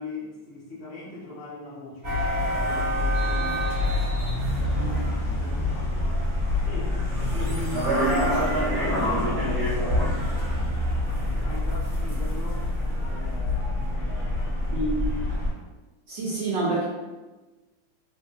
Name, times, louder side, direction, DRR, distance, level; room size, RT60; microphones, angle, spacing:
voice 1, 0.0-3.8 4.6-6.2 6.7-7.0 7.3-8.1 8.7-9.8 10.7-15.2, left 3 dB, 15° left, -9 dB, 0.8 m, -41 dB
sound 1, 2.0-15.5, left 1 dB, 35° right, 1.3 m, -26 dB
voice 2, 16.1-16.8, right 2 dB, 75° right, -7 dB, 1.3 m, -27 dB
3.0 x 2.7 x 2.7 m, 1.2 s
omnidirectional pair, 2.1 m